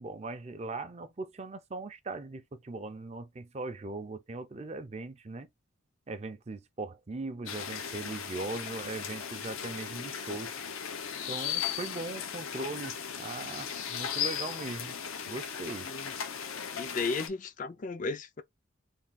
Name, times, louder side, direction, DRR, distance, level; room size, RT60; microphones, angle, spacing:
voice 1, 0.0-5.5 6.1-10.5 11.3-15.0 15.3-15.9, right 3 dB, 30° right, 0.5 m, -39 dB
sound 1, 7.5-17.3, left 8 dB, 85° left, 0.7 m, -37 dB
voice 2, 15.8-16.1 16.7-18.4, left 4 dB, 40° left, 0.4 m, -35 dB
3.4 x 2.3 x 4.0 m
head